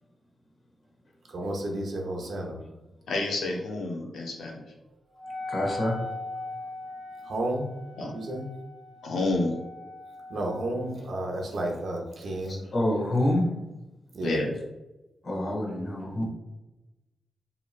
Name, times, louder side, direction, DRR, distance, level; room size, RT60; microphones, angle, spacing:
voice 1, 1.3-2.7 7.2-7.6 8.1-8.4 10.3-12.6 14.1-14.4, right 1 dB, 70° right, 1 dB, 0.7 m, -32 dB
voice 2, 3.1-4.6 8.0-8.1 9.0-9.6 14.2-14.5, left 2 dB, 85° left, -1 dB, 0.6 m, -29 dB
Wind instrument woodwind instrument, 5.2-10.9, left 2 dB, 10° left, 1.3 m, -40 dB
voice 3, 5.5-6.0 12.5-13.4 15.2-16.3, left 1 dB, 55° left, -1 dB, 1.0 m, -27 dB
2.9 x 2.8 x 2.4 m, 1.0 s
cardioid pair, 60°, 0 cm